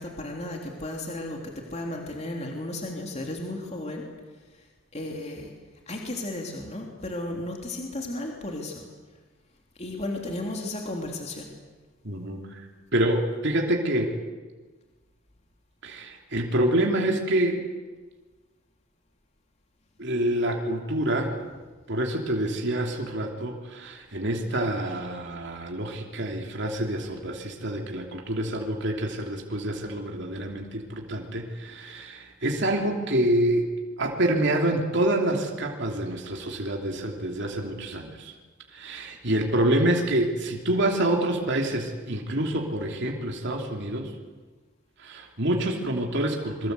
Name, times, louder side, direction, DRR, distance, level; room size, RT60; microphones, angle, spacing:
voice 1, 0.0-4.0 4.5-4.7 4.9-5.5 5.9-8.8 9.8-11.5, left 1 dB, 30° left, 0 dB, 3.3 m, -34 dB
voice 2, 12.0-12.6 12.9-14.1 15.8-17.6 20.0-21.3 21.9-33.7 34.0-38.3 38.7-44.1 45.0-46.7, right 1 dB, 55° right, 1 dB, 3.0 m, -27 dB
27.5 x 24.0 x 8.2 m, 1.3 s
head